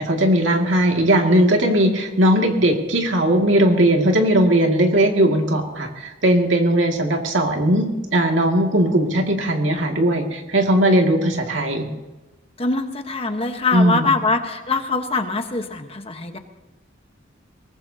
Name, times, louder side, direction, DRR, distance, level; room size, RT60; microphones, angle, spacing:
voice 1, 0.0-11.9 13.7-14.1, right 1 dB, 75° right, 2 dB, 2.2 m, -18 dB
voice 2, 12.6-16.4, left 3 dB, 30° left, 6 dB, 1.2 m, -23 dB
22.5 x 19.5 x 2.8 m, 1.1 s
head